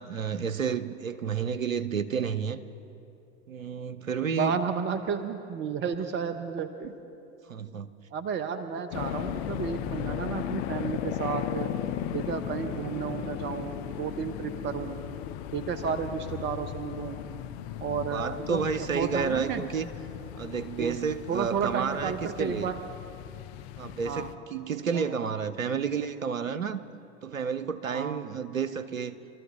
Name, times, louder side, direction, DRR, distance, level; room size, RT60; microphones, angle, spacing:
voice 1, 0.0-2.6 3.5-4.5 7.5-7.9 18.1-19.9 20.4-22.7 23.8-26.8 27.2-29.2, right 6 dB, 90° right, 13 dB, 0.7 m, -31 dB
voice 2, 4.3-6.9 8.1-11.7 12.1-15.0 15.5-17.2 17.8-19.6 20.8-21.0 21.3-22.8 24.1-24.3 24.9-25.1 27.9-28.2, right 6 dB, 30° right, 9 dB, 0.8 m, -32 dB
sound 1, 8.9-24.3, left 11 dB, 50° left, 0.8 m, -36 dB
24.0 x 13.5 x 3.6 m, 2.7 s
figure-of-eight pair, 80°, 39 cm